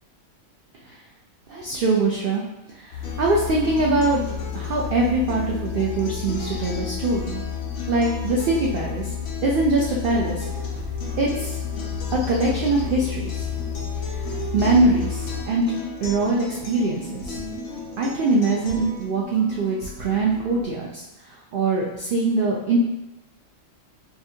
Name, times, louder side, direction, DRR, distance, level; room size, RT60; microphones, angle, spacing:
voice 1, 1.5-2.4 2.7-4.2 4.5-7.4 7.9-9.2 9.4-10.5 11.2-11.6 12.1-13.5 14.1-14.3 14.5-15.6 16.0-17.4 18.0-22.8, right 3 dB, 70° right, -2 dB, 0.5 m, -23 dB
sound 1, 2.9-15.4, left 8 dB, 90° left, 1.0 m, -31 dB
Acoustic guitar, 3.0-19.0, left 3 dB, 65° left, 1.1 m, -37 dB
sound 2, 10.1-20.6, right 1 dB, 30° right, 0.9 m, -39 dB
4.8 x 2.5 x 2.7 m, 0.95 s
omnidirectional pair, 1.4 m